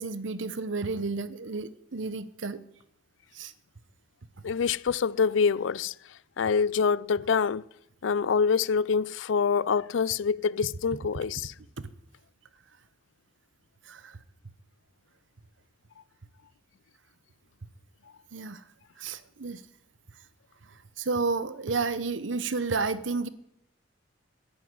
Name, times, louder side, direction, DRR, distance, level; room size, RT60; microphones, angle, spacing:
voice 1, 0.0-2.6 3.3-3.5 13.9-14.1 18.3-18.6 19.0-19.6 21.0-23.3, right 4 dB, 85° right, 0.9 m, -31 dB
voice 2, 4.4-5.9 6.4-7.6 8.0-11.5, left 6 dB, 85° left, 0.4 m, -25 dB
11.0 x 9.4 x 9.7 m
head